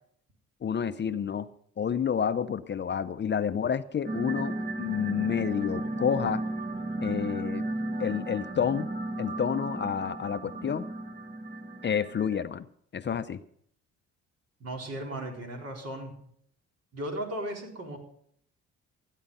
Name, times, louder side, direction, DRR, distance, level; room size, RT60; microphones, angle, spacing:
voice 1, 0.6-1.5 1.8-6.4 7.0-7.7 8.0-8.9 9.2-10.9 11.8-12.7 12.9-13.4, left 7 dB, 35° left, 12 dB, 0.6 m, -29 dB
sound 1, 4.0-12.4, right 2 dB, 30° right, 1.2 m, -34 dB
voice 2, 14.6-16.1 16.9-18.0, right 1 dB, 55° right, 1 dB, 4.3 m, -36 dB
15.0 x 10.0 x 5.5 m, 0.64 s
cardioid pair, 90°, 30 cm